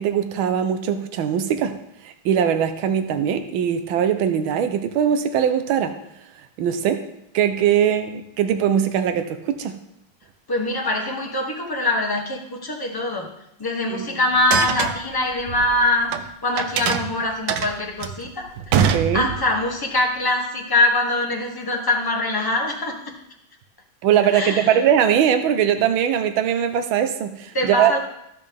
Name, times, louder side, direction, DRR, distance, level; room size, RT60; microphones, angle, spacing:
voice 1, 0.0-1.7 2.0-5.9 6.6-7.0 7.3-9.8 13.9-14.2 18.9-19.3 24.0-27.9, right 9 dB, 90° right, 8 dB, 1.5 m, -21 dB
voice 2, 10.5-13.3 13.6-23.1 24.3-24.8 27.5-28.0, left 2 dB, 20° left, 1 dB, 0.7 m, -23 dB
sound 1, 14.4-16.2 16.6-19.6, right 8 dB, 70° right, 1.2 m, -24 dB
14.0 x 5.3 x 3.5 m, 0.79 s
omnidirectional pair, 2.1 m